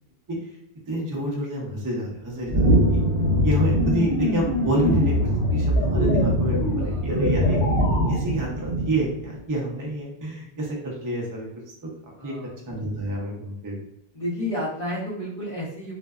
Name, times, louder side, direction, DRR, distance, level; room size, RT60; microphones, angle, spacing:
voice 1, 0.9-3.0 3.4-7.6 8.1-11.5 12.2-12.3 12.7-13.8, right 1 dB, 30° right, -2 dB, 0.4 m, -28 dB
sound 1, 2.5-9.3, right 1 dB, 70° right, 1.0 m, -24 dB
sound 2, 2.6-8.2, left 3 dB, 75° left, 1.0 m, -25 dB
voice 2, 6.8-7.1 12.2-12.6 14.1-15.9, left 1 dB, 35° left, -7 dB, 0.8 m, -31 dB
2.5 x 2.2 x 2.2 m, 0.80 s
omnidirectional pair, 1.2 m